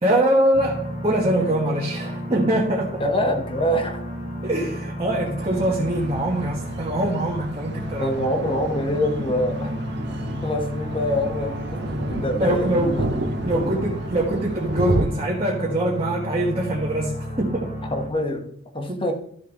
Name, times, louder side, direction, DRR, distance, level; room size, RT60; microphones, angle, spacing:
voice 1, 0.0-3.0 4.4-8.1 12.4-13.0 13.3-17.7 18.9-19.0, right 1 dB, 25° right, 1.5 m, -23 dB
sound 1, 0.5-18.1, left 1 dB, 45° left, 2.0 m, -32 dB
voice 2, 3.0-4.0 8.0-9.7 10.4-13.0 13.5-13.7 17.9-19.1, left 1 dB, 25° left, 1.2 m, -25 dB
sound 2, 5.4-15.1, right 2 dB, 55° right, 0.8 m, -31 dB
13.0 x 6.9 x 3.1 m
head